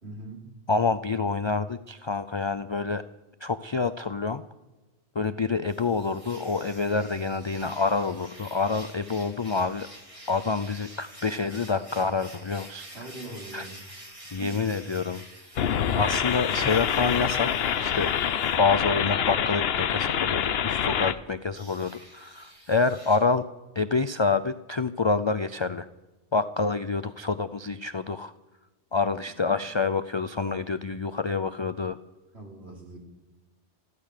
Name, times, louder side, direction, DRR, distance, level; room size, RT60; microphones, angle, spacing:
voice 1, 0.0-0.5 12.9-13.8 14.4-14.6 32.3-33.0, right 2 dB, 70° right, 0 dB, 3.6 m, -41 dB
voice 2, 0.7-3.0 3.4-4.4 5.1-9.9 10.3-13.1 13.5-13.7 14.3-15.2 15.9-18.1 18.6-23.5 23.7-25.9 26.3-28.3 28.9-32.0, left 4 dB, 45° left, 12 dB, 0.3 m, -27 dB
sound 1, 5.7-18.6 21.5-23.2, right 1 dB, 30° right, 3.1 m, -48 dB
sound 2, 15.5-21.1, left 8 dB, 65° left, 0.9 m, -26 dB
15.0 x 12.5 x 6.6 m, 1.1 s
omnidirectional pair, 1.2 m